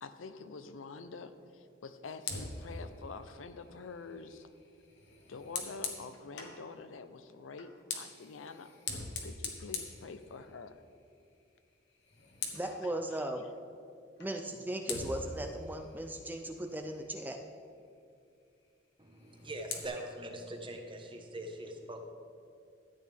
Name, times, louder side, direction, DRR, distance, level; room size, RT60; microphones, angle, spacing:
voice 1, 0.0-4.5 5.3-8.7 9.2-10.8 12.8-12.9, left 4 dB, 85° left, 10 dB, 0.6 m, -47 dB
Fire, 2.2-6.6 7.5-10.8 11.1-11.4 11.7-12.8 14.2-14.3 14.9-17.2 19.1-19.9, left 5 dB, 65° left, 1.2 m, -43 dB
voice 2, 12.5-13.4 14.2-17.4, right 1 dB, 10° right, 4 dB, 0.4 m, -37 dB
voice 3, 19.0-22.0, right 1 dB, 25° right, 4 dB, 1.0 m, -42 dB
13.5 x 8.7 x 3.4 m, 2.4 s
head